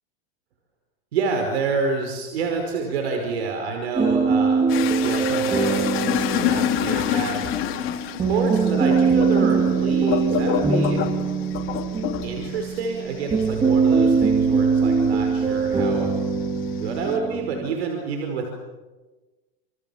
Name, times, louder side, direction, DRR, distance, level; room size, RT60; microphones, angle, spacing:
voice 1, 1.1-7.5 8.2-11.1 12.2-16.1 16.8-18.5, right 4 dB, 90° right, 3 dB, 5.2 m, -28 dB
sound 1, 4.0-17.7, right 5 dB, 15° right, 2.5 m, -22 dB
sound 2, 4.7-15.6 16.0-17.1, left 12 dB, 40° left, 3.4 m, -28 dB
28.5 x 28.0 x 7.2 m, 1.2 s
supercardioid pair, 135°, 31 cm